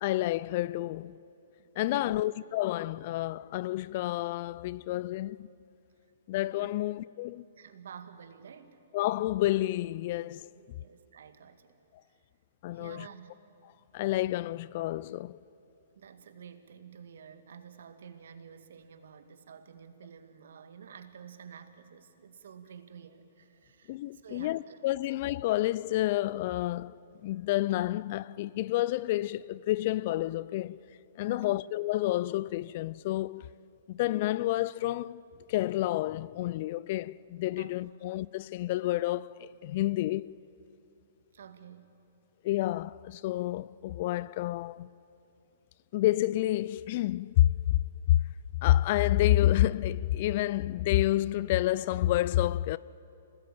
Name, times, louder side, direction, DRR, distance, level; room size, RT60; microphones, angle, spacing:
voice 1, 0.0-1.2 1.8-5.5 6.3-7.4 8.9-10.5 12.6-13.1 13.9-15.4 23.9-30.8 31.2-33.5 33.9-35.2 35.5-40.4 42.4-44.9 45.9-47.5 48.1-48.2 48.6-52.8, left 15 dB, 45° left, 0.5 m, -29 dB
voice 2, 1.6-2.2 6.5-6.7 7.6-8.8 10.8-11.8 12.7-13.3 16.0-25.1 31.3-31.6 37.6-38.0 41.3-41.9, right 7 dB, 65° right, 2.0 m, -50 dB
26.0 x 19.5 x 8.9 m
hypercardioid pair, 125°, 0 cm